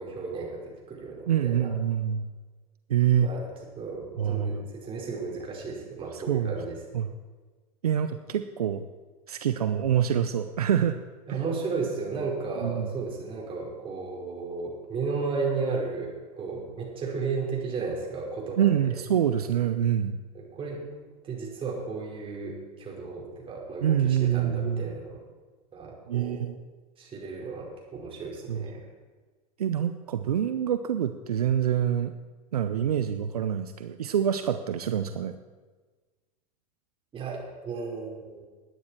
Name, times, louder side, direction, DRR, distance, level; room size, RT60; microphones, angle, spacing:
voice 1, 0.0-1.7 3.0-6.8 11.3-18.9 20.3-20.8 21.2-25.2 25.7-26.5 27.0-28.8 37.1-38.4, right 4 dB, 30° right, -2 dB, 4.9 m, -34 dB
voice 2, 1.3-2.3 2.9-3.3 4.2-4.6 6.1-6.5 6.9-7.1 7.8-8.8 9.3-11.0 11.3-11.4 12.6-12.9 18.6-20.2 23.8-24.9 26.1-26.5 28.5-28.6 29.6-32.1 32.5-35.4, right 9 dB, 80° right, 9 dB, 0.7 m, -26 dB
20.0 x 9.6 x 4.4 m, 1.4 s
hypercardioid pair, 90°, 20 cm